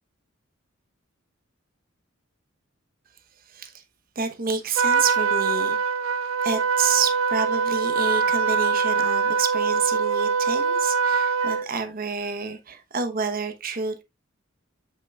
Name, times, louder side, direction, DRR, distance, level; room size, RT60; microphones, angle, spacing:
voice 1, 3.5-3.8 4.1-5.8 6.4-14.0, right 5 dB, 45° right, 1.0 m, -29 dB
Trumpet, 4.8-11.7, right 5 dB, 80° right, 0.6 m, -23 dB
7.6 x 6.0 x 2.3 m
head